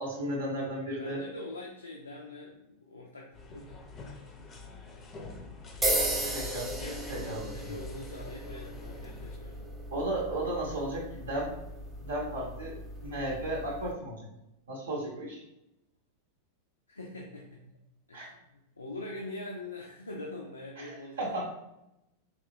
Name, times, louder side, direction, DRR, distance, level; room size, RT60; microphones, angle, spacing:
voice 1, 0.0-1.2 6.3-6.7 7.1-7.5 9.9-11.6 12.0-14.3 14.7-15.4 18.1-18.3 20.8-21.5, right 1 dB, 65° right, -2 dB, 0.7 m, -34 dB
voice 2, 0.9-3.7 5.9-9.7 16.9-17.6 18.1-21.5, left 2 dB, 80° left, -1 dB, 0.4 m, -44 dB
sound 1, 3.3-9.4, left 3 dB, 25° left, 0.5 m, -46 dB
sound 2, 5.8-13.9, right 1 dB, 10° right, 0.8 m, -36 dB
3.5 x 2.9 x 2.5 m, 0.89 s
figure-of-eight pair, 90°, 0 cm